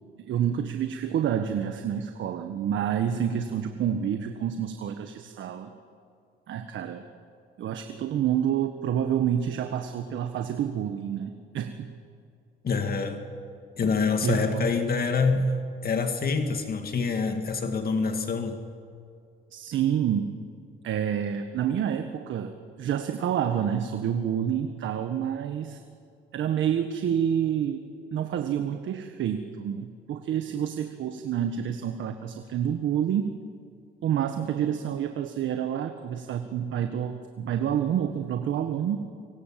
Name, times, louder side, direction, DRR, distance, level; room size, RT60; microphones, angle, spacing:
voice 1, 0.2-5.7 6.5-7.0 7.6-11.9 14.2-14.7 19.5-20.3 20.8-25.8 26.3-33.4 34.0-39.1, right 9 dB, 75° right, 7 dB, 1.5 m, -28 dB
voice 2, 12.6-13.2 13.8-15.5 15.8-18.6, left 4 dB, 50° left, 6 dB, 2.3 m, -26 dB
26.0 x 25.0 x 7.6 m, 2.3 s
cardioid pair, 90°, 20 cm